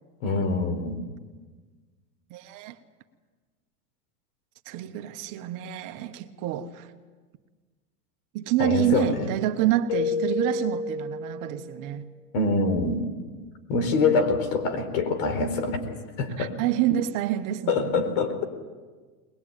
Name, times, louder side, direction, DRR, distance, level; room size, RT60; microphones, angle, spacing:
voice 1, 0.2-1.0 8.6-9.3 12.3-13.0 13.7-16.5 17.7-18.4, left 3 dB, 55° left, 4.4 m, -25 dB
voice 2, 2.3-2.7 4.6-6.9 8.3-12.1 16.4-18.0, right 12 dB, 45° right, 1.4 m, -27 dB
Keyboard (musical), 9.9-11.9, left 4 dB, 85° left, 2.5 m, -30 dB
22.0 x 21.0 x 9.0 m
supercardioid pair, 145°, 45 cm